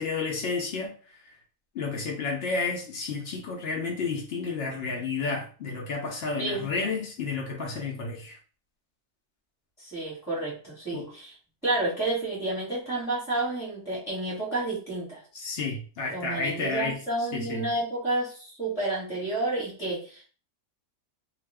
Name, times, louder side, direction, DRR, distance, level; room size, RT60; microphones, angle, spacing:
voice 1, 0.0-1.3 1.7-8.4 10.9-11.1 15.3-17.7, left 4 dB, 75° left, 0.5 m, -31 dB
voice 2, 9.8-11.3 11.6-15.2 16.1-20.2, right 2 dB, ahead, 1.1 m, -30 dB
2.4 x 2.4 x 3.3 m
omnidirectional pair, 1.7 m